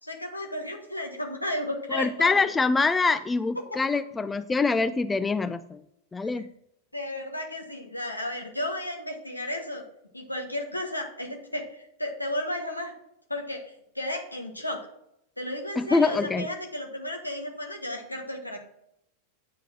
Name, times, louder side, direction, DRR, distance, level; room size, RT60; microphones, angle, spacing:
voice 1, 0.0-2.5 3.7-4.0 6.3-6.5 6.9-9.8 10.1-12.9 13.3-13.6 13.9-14.9 15.4-18.6, left 1 dB, 85° left, 2 dB, 1.4 m, -33 dB
voice 2, 1.9-5.8 6.1-6.5 15.8-16.4, left 4 dB, 15° left, 12 dB, 0.4 m, -24 dB
9.2 x 4.7 x 6.0 m, 0.77 s
figure-of-eight pair, 90°, 0 cm